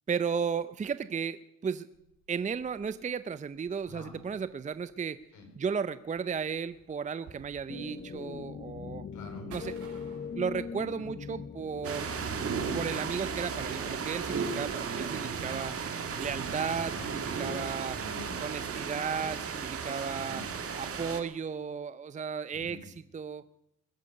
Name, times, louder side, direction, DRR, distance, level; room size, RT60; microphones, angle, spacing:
voice 1, 0.1-1.9 2.3-5.2 5.6-9.0 9.5-9.7 10.3-12.1 12.7-15.7 16.2-18.0 18.4-20.4 20.8-23.4, right 6 dB, 25° right, 14 dB, 0.5 m, -34 dB
sound 1, 1.9-15.7 16.3-18.8 19.1-19.2 19.8-20.1 20.4-20.7, right 5 dB, 85° right, 6.2 m, -58 dB
voice 2, 3.9-4.2 5.3-5.5 9.1-9.5 12.2-12.6 16.7-17.1 17.9-18.3 20.2-20.6 22.5-22.9, left 1 dB, 80° left, 4 dB, 4.8 m, -46 dB
sound 2, 7.7-14.8, left 6 dB, 35° left, 0.9 m, -42 dB
sound 3, 11.8-21.2, right 6 dB, 50° right, 1.8 m, -35 dB
20.5 x 9.9 x 6.6 m, 0.79 s
cardioid pair, 90°, 30 cm